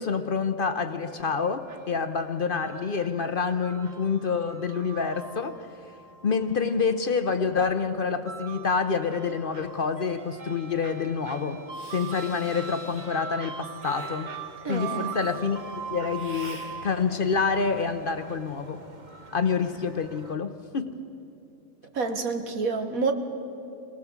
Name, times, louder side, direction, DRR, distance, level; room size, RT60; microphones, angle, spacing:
voice 1, 0.0-5.7 6.2-11.6 11.9-14.4 14.7-15.6 15.9-18.8 19.3-21.0, left 5 dB, 45° left, 9 dB, 0.8 m, -27 dB
sound 1, 1.0-20.3, right 5 dB, 35° right, 1.1 m, -42 dB
Hiss, 11.7-13.1 13.8-14.2 15.1-15.4 16.1-16.7, equal, 20° right, 5.5 m, -46 dB
voice 2, 14.6-15.2 21.9-23.1, right 4 dB, 90° right, 6 dB, 1.9 m, -28 dB
24.5 x 19.0 x 7.2 m, 2.7 s
omnidirectional pair, 1.5 m